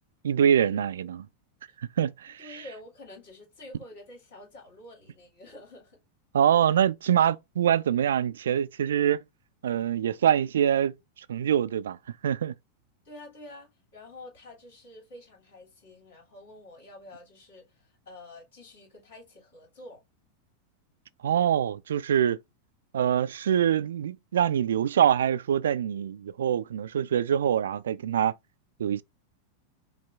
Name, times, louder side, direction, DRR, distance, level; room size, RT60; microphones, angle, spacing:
voice 1, 0.2-1.3 1.8-2.6 6.3-9.2 9.6-10.9 11.3-12.0 12.2-12.5 21.2-22.4 22.9-28.3 28.8-29.0, right 9 dB, 65° right, 0.4 m, -24 dB
voice 2, 2.4-6.0 13.0-20.0, left 2 dB, 60° left, 2.7 m, -48 dB
5.6 x 2.4 x 3.5 m
figure-of-eight pair, 90°, 0 cm